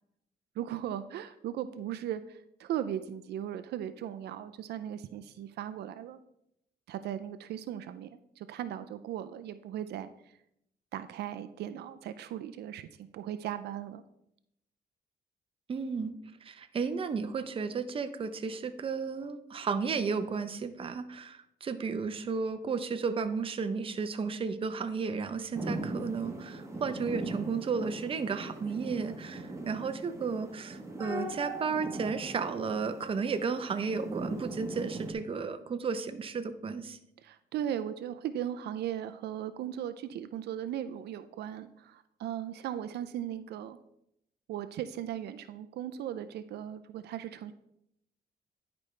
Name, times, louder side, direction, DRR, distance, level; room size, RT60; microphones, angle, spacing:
voice 1, 0.6-6.2 6.9-10.1 10.9-12.9 13.1-14.0 37.2-43.8 44.5-47.5, right 10 dB, 80° right, 11 dB, 0.4 m, -37 dB
voice 2, 15.7-16.1 16.4-37.0, right 5 dB, 35° right, 9 dB, 0.6 m, -33 dB
sound 1, 25.5-35.1, right 2 dB, 15° right, 1.1 m, -40 dB
10.5 x 5.1 x 3.2 m, 0.78 s
cardioid pair, 120°, 17 cm